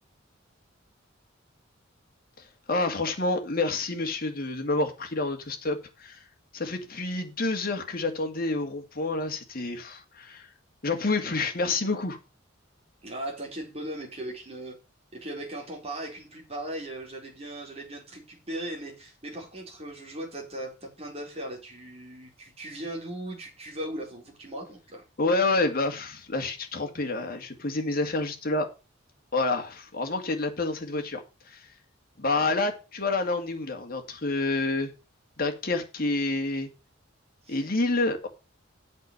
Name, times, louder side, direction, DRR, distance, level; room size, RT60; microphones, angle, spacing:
voice 1, 2.7-6.2 6.5-10.5 10.8-12.2 25.2-28.7 29.3-31.2 31.5-31.6 32.2-34.9 35.4-36.7 37.5-38.3, left 3 dB, 50° left, 2.0 m, -28 dB
voice 2, 13.0-14.8 15.1-25.0 37.5-37.6, right 1 dB, 30° right, 4.2 m, -38 dB
8.3 x 6.1 x 6.8 m
head